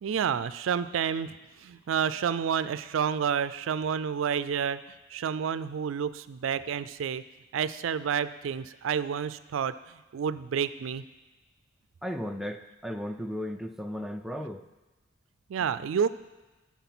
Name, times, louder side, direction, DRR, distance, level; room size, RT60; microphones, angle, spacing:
voice 1, 0.0-4.8 5.1-7.2 7.5-9.8 10.1-11.0 15.5-16.1, right 7 dB, 80° right, 14 dB, 0.4 m, -29 dB
voice 2, 12.0-14.6, equal, ahead, 5 dB, 0.3 m, -35 dB
12.5 x 4.5 x 6.0 m, 1.1 s
head